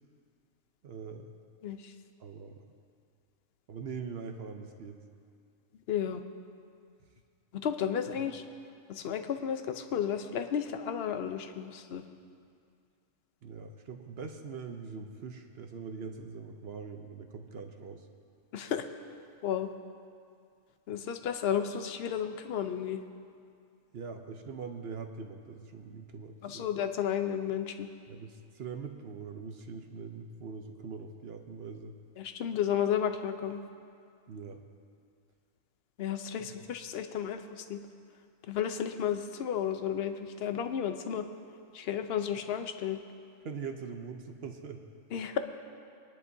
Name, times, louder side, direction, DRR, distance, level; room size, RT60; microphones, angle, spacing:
voice 1, 0.8-1.3 2.2-2.6 3.7-5.0 13.4-18.1 23.9-26.7 28.1-31.9 34.3-34.6 36.4-36.6 43.4-44.8, right 5 dB, 55° right, 5 dB, 0.8 m, -42 dB
voice 2, 5.9-6.2 7.6-8.4 8.9-12.0 18.5-18.9 19.4-19.7 20.9-23.0 26.4-27.9 32.2-33.6 36.0-37.8 38.5-41.2 41.7-43.0 45.1-45.4, left 8 dB, 55° left, 8 dB, 0.8 m, -32 dB
22.0 x 11.0 x 2.7 m, 2.3 s
omnidirectional pair, 1.5 m